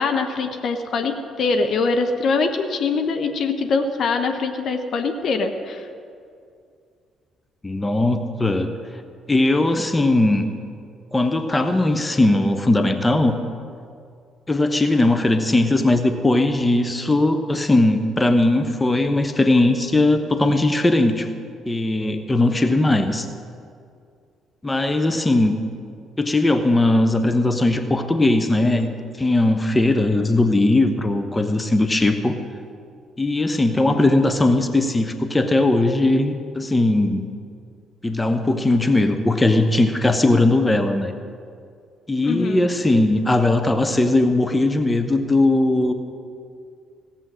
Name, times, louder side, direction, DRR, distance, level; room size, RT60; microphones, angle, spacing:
voice 1, 0.0-5.9 42.2-42.7, left 4 dB, 50° left, 5 dB, 0.9 m, -23 dB
voice 2, 7.6-8.7 9.3-10.5 11.1-13.4 14.5-21.3 21.7-23.3 24.6-25.6 26.2-28.9 29.2-32.4 33.2-37.3 38.0-41.1 42.1-45.9, left 2 dB, 15° left, 8 dB, 1.0 m, -19 dB
17.0 x 7.5 x 6.4 m, 2.3 s
figure-of-eight pair, 45°, 0 cm